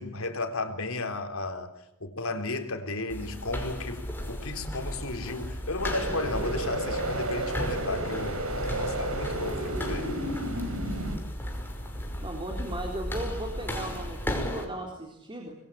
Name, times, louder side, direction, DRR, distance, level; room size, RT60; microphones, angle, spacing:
voice 1, 0.0-1.7 2.0-10.1, left 2 dB, 70° left, 6 dB, 4.0 m, -34 dB
sound 1, 3.1-14.6, equal, 10° left, 5.6 m, -35 dB
sound 2, 5.9-11.2, right 1 dB, 80° right, 5.2 m, -32 dB
voice 2, 12.2-15.6, right 1 dB, 25° right, 2 dB, 3.8 m, -37 dB
26.5 x 22.0 x 8.7 m, 0.86 s
head